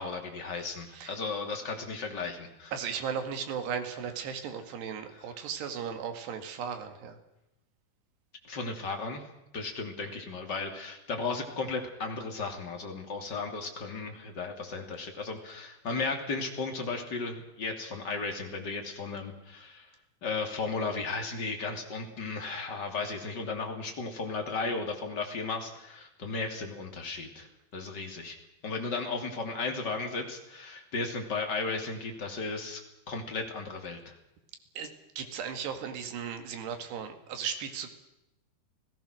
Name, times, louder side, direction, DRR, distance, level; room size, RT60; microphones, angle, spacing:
voice 1, 0.0-2.7 8.4-9.2 9.5-19.9 20.2-27.5 27.7-28.4 28.6-32.8 33.1-34.1, left 4 dB, 30° left, 3 dB, 2.8 m, -35 dB
voice 2, 2.7-7.2 34.8-37.9, right 7 dB, 85° right, 7 dB, 4.2 m, -36 dB
29.5 x 17.5 x 6.5 m, 0.88 s
omnidirectional pair, 4.7 m